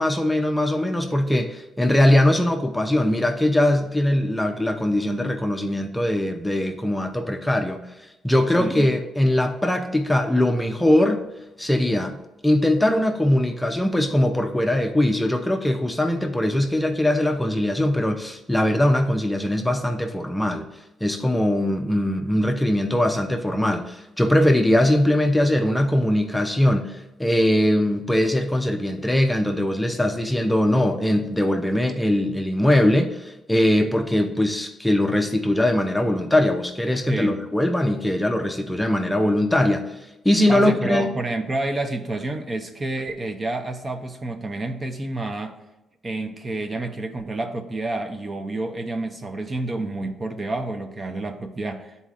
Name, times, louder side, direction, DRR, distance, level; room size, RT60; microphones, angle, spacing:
voice 1, 0.0-7.8 8.2-11.2 11.6-12.2 12.4-20.7 21.0-39.8 40.2-41.2, left 1 dB, 5° left, 4 dB, 0.6 m, -21 dB
voice 2, 37.1-37.4 40.5-45.6 46.0-52.0, right 2 dB, 30° right, 5 dB, 0.7 m, -29 dB
9.9 x 4.1 x 2.5 m, 0.98 s
cardioid pair, 90°, 0 cm